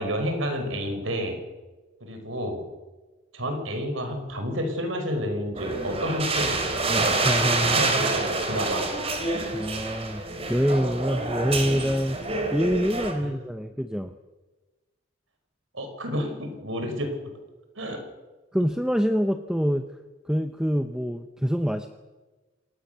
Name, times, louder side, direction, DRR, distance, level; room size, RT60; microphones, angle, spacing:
voice 1, 0.0-1.4 2.0-2.7 3.3-6.6 6.8-7.3 7.6-8.9 13.2-13.4 15.7-17.3 17.8-18.1, equal, 80° right, 6 dB, 5.5 m, -30 dB
sound 1, 5.5-13.1, right 3 dB, 30° right, 3.8 m, -27 dB
voice 2, 6.9-7.8 9.5-10.2 10.5-12.2 12.5-14.1 18.5-19.9 20.3-21.9, equal, 5° right, 8 dB, 0.8 m, -25 dB
28.0 x 19.0 x 6.9 m, 1.2 s
head